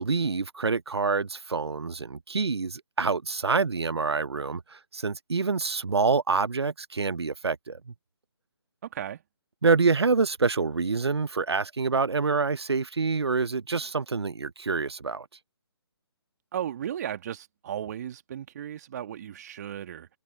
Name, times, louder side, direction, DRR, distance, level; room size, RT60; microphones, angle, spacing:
voice 1, 0.0-7.9 9.6-15.3, right 4 dB, 75° right, 0.9 m, -26 dB
voice 2, 8.9-9.2 16.5-20.1, right 10 dB, 40° right, 2.6 m, -35 dB
figure-of-eight pair, 145°, 14 cm